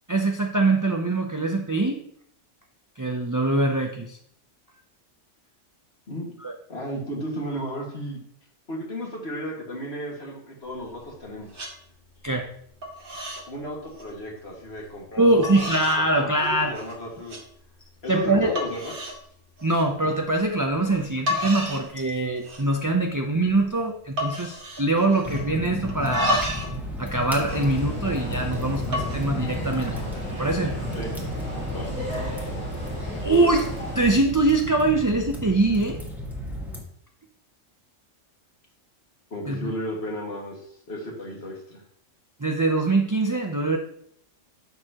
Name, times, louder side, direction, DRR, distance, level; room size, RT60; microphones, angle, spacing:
voice 1, 0.1-2.0 3.0-4.2 6.4-6.5 12.2-12.5 15.2-16.7 18.1-18.5 19.6-26.4 27.0-30.0 30.4-30.7 33.2-36.0 39.5-39.7 42.4-43.8, right 2 dB, 20° right, 3 dB, 0.5 m, -23 dB
voice 2, 6.7-8.2 8.7-11.6 13.5-17.4 18.0-18.9 30.9-31.1 31.7-31.9 39.3-41.8, equal, 55° left, -1 dB, 2.2 m, -34 dB
sound 1, 10.9-11.2 11.5-11.7 12.2-12.5 12.8-13.5 13.8-14.1 14.8-14.9 15.4-16.0 16.4-16.9 17.3-17.4 18.0-18.1 18.5-19.2 19.6-19.9 20.9-21.0 21.3-21.9 22.2-22.8 23.1-23.2 23.4-23.7 24.2-25.5 25.9-26.8 27.0-28.3 28.8-29.2, left 1 dB, 45° right, 1.6 m, -31 dB
sound 2, 25.2-36.8, left 1 dB, ahead, 1.7 m, -34 dB
sound 3, 27.4-34.1, equal, 85° left, 3.4 m, -34 dB
10.5 x 6.9 x 3.0 m, 0.66 s
omnidirectional pair, 1.3 m